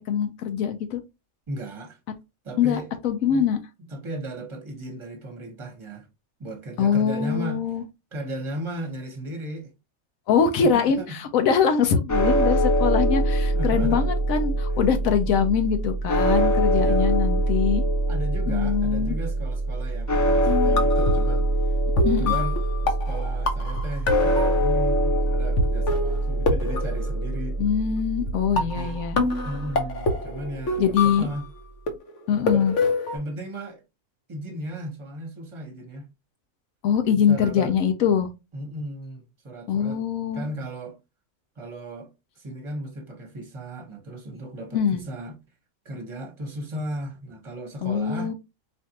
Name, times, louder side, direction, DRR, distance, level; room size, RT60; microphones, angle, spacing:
voice 1, 0.1-1.0 2.6-3.6 6.8-7.8 10.3-17.8 18.5-19.2 22.0-22.4 27.6-29.2 30.8-31.3 32.3-32.7 36.8-38.3 39.7-40.4 44.7-45.0 47.8-48.3, left 7 dB, 90° left, 1.1 m, -23 dB
voice 2, 1.5-2.0 2.4-2.9 3.2-3.5 3.9-6.1 6.4-7.8 8.1-9.7 10.6-11.2 11.6-11.8 13.5-14.1 14.7-14.8 16.8-17.2 18.1-21.8 22.0-27.6 28.5-29.0 29.4-31.5 32.4-32.7 33.1-33.8 34.3-36.1 37.3-37.7 38.5-40.0 40.3-41.0 41.6-42.1 42.4-45.4 45.8-48.3, right 1 dB, 25° right, 1.0 m, -36 dB
sound 1, 12.1-30.3, right 1 dB, 25° left, 0.4 m, -24 dB
sound 2, 20.5-21.3 22.0-24.9 25.6-25.7 25.9-27.6 28.3-28.4 28.6-31.5 31.9-33.2, left 2 dB, 65° left, 1.0 m, -26 dB
4.3 x 2.5 x 2.8 m
omnidirectional pair, 1.4 m